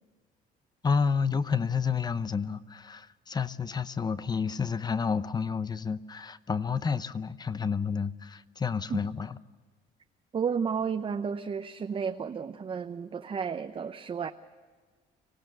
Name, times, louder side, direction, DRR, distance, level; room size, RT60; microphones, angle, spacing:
voice 1, 0.8-9.4, left 5 dB, 25° left, 14 dB, 0.8 m, -30 dB
voice 2, 10.3-14.3, right 6 dB, 30° right, 7 dB, 0.7 m, -32 dB
25.5 x 17.0 x 6.8 m, 1.5 s
cardioid pair, 110°, 17 cm